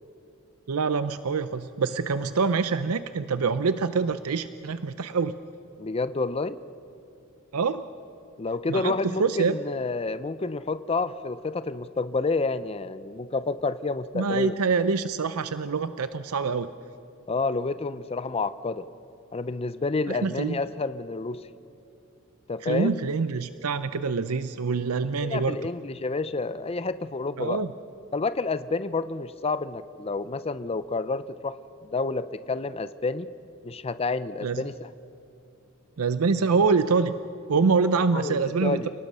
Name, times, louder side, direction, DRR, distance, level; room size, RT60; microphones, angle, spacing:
voice 1, 0.7-5.3 7.5-7.8 8.7-9.5 14.1-16.7 20.1-20.6 22.6-25.6 27.4-27.7 34.4-34.6 36.0-37.1 37.5-38.8, right 4 dB, 90° right, 12 dB, 0.6 m, -25 dB
voice 2, 5.8-6.6 8.4-14.6 17.3-18.9 19.3-21.4 22.5-23.0 25.2-27.6 28.1-31.6 31.8-33.3 33.6-34.9 38.1-38.9, left 3 dB, 30° left, 13 dB, 0.5 m, -29 dB
29.5 x 19.0 x 5.5 m, 2.7 s
head